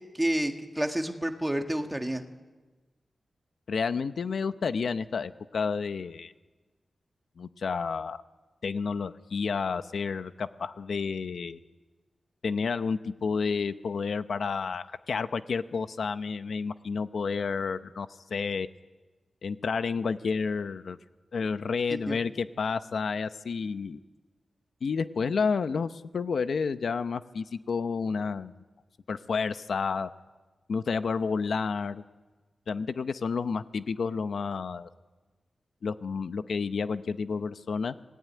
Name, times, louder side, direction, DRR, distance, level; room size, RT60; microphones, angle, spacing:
voice 1, 0.1-2.2 21.9-22.2, right 1 dB, 10° right, 5 dB, 1.7 m, -29 dB
voice 2, 3.7-6.3 7.4-8.2 8.6-11.6 12.4-18.7 19.4-21.0 21.3-24.0 24.8-28.5 29.1-30.1 30.7-32.0 32.7-34.9 35.8-37.9, left 5 dB, 70° left, 11 dB, 0.8 m, -30 dB
26.5 x 18.5 x 9.5 m, 1.3 s
wide cardioid pair, 170°, 0 cm